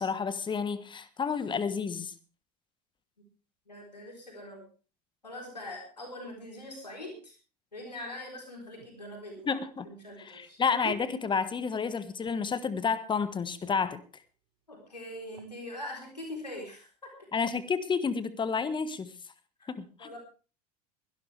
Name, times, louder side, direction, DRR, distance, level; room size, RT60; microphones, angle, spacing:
voice 1, 0.0-2.1 9.5-9.9 10.2-14.0 17.3-19.1 19.7-20.1, left 5 dB, 25° left, 1.4 m, -30 dB
voice 2, 3.7-4.7 5.2-7.3 7.7-10.6 14.7-17.3 19.6-20.2, left 1 dB, 90° left, 3.7 m, -43 dB
sound 1, 8.8-11.9 12.2-12.6 13.0-13.1 13.4-14.1 14.8-15.5 16.2-16.3, right 10 dB, 65° right, 1.4 m, -49 dB
22.0 x 12.0 x 3.3 m
figure-of-eight pair, 75°, 21 cm